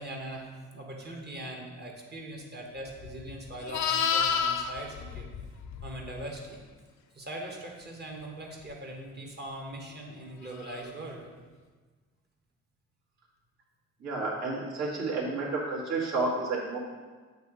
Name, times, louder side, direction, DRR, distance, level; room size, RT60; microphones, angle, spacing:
voice 1, 0.0-5.3 5.8-6.6 7.1-11.2, right 1 dB, 35° right, 0 dB, 1.2 m, -41 dB
Livestock farm animals working animals, 3.0-6.3 10.6-10.9, left 7 dB, 70° left, 0.6 m, -30 dB
voice 2, 14.0-16.8, right 3 dB, 65° right, -4 dB, 1.8 m, -31 dB
8.0 x 2.8 x 4.8 m, 1.4 s
cardioid pair, 90°, 30 cm